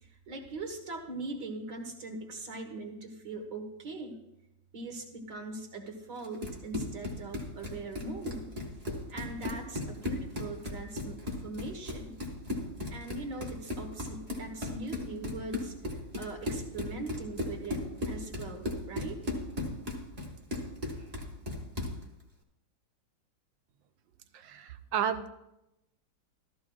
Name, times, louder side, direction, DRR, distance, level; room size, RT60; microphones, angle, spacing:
voice 1, 0.0-4.2 4.7-8.5 9.1-12.2 12.9-19.2, right 2 dB, 50° right, 3 dB, 1.7 m, -41 dB
Run, 6.2-22.0, left 1 dB, 25° right, 1.2 m, -37 dB
voice 2, 24.3-25.3, right 8 dB, 85° right, 9 dB, 1.3 m, -32 dB
14.0 x 13.5 x 2.3 m, 0.91 s
omnidirectional pair, 2.0 m